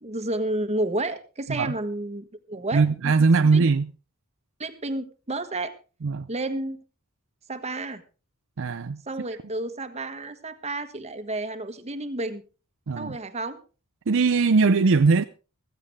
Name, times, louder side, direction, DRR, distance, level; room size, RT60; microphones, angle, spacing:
voice 1, 0.0-3.1 3.5-3.6 4.6-5.7 6.3-6.8 7.5-8.0 9.1-12.4 13.0-13.6, right 2 dB, 30° right, 1.5 m, -31 dB
voice 2, 2.7-3.9 6.0-6.3 8.6-9.0 12.9-13.2 14.1-15.2, right 4 dB, 65° right, 0.6 m, -20 dB
15.0 x 15.0 x 3.6 m
head